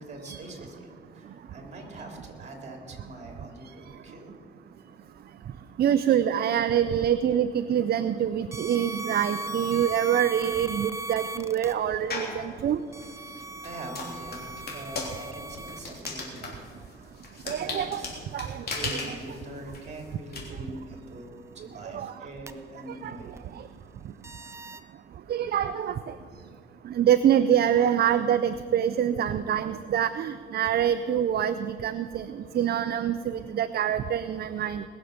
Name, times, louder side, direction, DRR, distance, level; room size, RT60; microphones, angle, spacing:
voice 1, 0.0-4.4 13.6-14.4 14.7-16.6 17.4-18.1 18.5-23.4, right 1 dB, 35° right, 2 dB, 3.3 m, -43 dB
voice 2, 5.8-12.8 17.5-18.0 18.3-18.7 21.9-22.1 23.0-23.2 25.3-26.2 26.8-34.8, right 9 dB, 55° right, 11 dB, 0.5 m, -25 dB
sound 1, 8.5-11.7 12.9-16.1 22.5-22.6 23.4-23.5 24.2-24.8, right 1 dB, 15° right, 0.8 m, -38 dB
sound 2, 12.1-12.4 13.0-20.4, left 3 dB, 50° left, 3.3 m, -37 dB
20.5 x 7.1 x 6.6 m, 2.3 s
cardioid pair, 90°, 20 cm